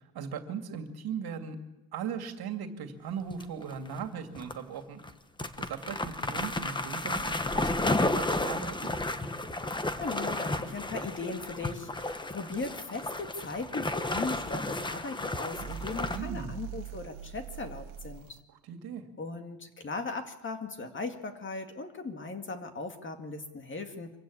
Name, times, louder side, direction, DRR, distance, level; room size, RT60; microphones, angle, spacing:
voice 1, 0.0-1.6 1.9-5.0 5.6-8.8 16.1-16.5 18.7-19.0, right 7 dB, 55° right, 6 dB, 2.6 m, -38 dB
sound 1, 3.3-4.0 4.3-4.5 5.0-5.1 5.4-16.2, left 2 dB, 10° left, 1.1 m, -32 dB
voice 2, 9.7-18.3 19.2-24.1, left 3 dB, 25° left, 6 dB, 2.1 m, -38 dB
sound 2, 15.5-18.4, right 9 dB, 75° right, 1.4 m, -42 dB
25.5 x 15.5 x 8.6 m, 1.0 s
cardioid pair, 135°, 45 cm